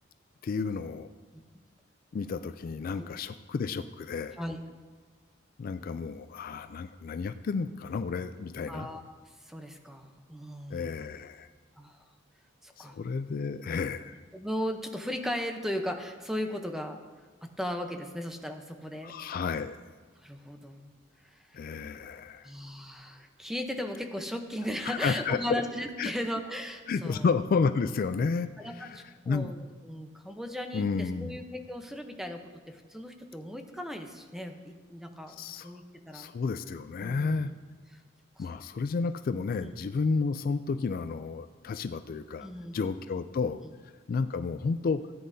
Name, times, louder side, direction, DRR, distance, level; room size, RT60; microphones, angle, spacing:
voice 1, 0.4-1.1 2.1-4.4 5.6-8.9 10.7-11.5 12.8-14.2 19.0-19.8 21.5-22.5 24.9-25.6 26.0-26.1 26.9-28.5 28.8-29.5 30.7-31.4 35.3-35.7 36.1-37.5 38.4-42.5 42.7-43.6 44.1-45.0, left 4 dB, 50° left, 11 dB, 0.3 m, -31 dB
voice 2, 8.7-9.1 9.4-10.9 11.8-12.0 12.6-13.0 14.3-17.0 17.4-19.1 20.2-21.0 21.2-21.4 22.4-27.3 28.6-32.4 32.7-36.3 37.0-37.5 37.9-38.0 38.4-38.5 39.6-39.7 42.4-42.8, equal, ahead, 5 dB, 0.8 m, -37 dB
16.0 x 9.4 x 2.7 m, 1.5 s
head